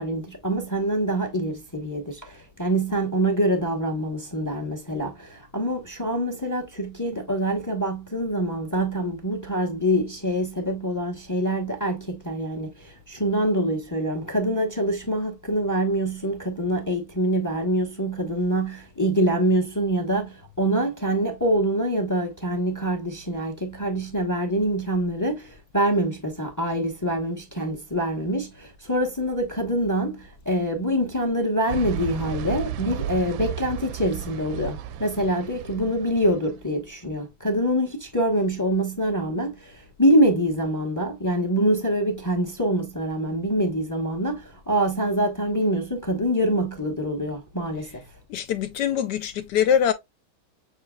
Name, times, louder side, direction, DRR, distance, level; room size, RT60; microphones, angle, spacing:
voice 1, 0.0-48.0, right 1 dB, 15° left, 0.6 m, -25 dB
sound 1, 31.7-36.5, right 11 dB, 75° right, 1.2 m, -33 dB
voice 2, 48.3-49.9, left 8 dB, 80° left, 0.9 m, -23 dB
7.4 x 3.1 x 2.3 m
omnidirectional pair, 2.4 m